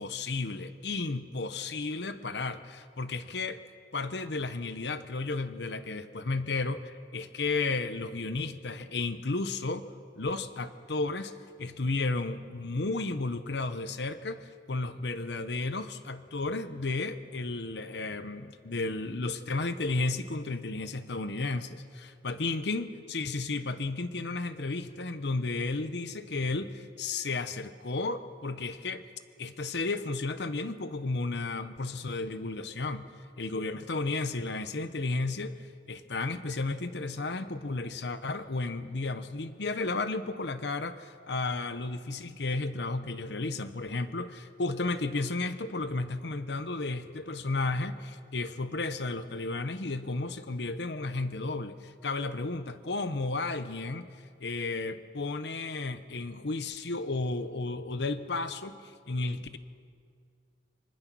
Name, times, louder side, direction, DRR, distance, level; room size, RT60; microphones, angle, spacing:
voice 1, 0.0-3.6 3.9-11.3 11.6-21.8 22.2-29.1 29.4-33.0 33.4-44.3 44.6-59.6, left 3 dB, 70° left, 11 dB, 0.9 m, -33 dB
26.0 x 25.0 x 6.2 m, 2.2 s
head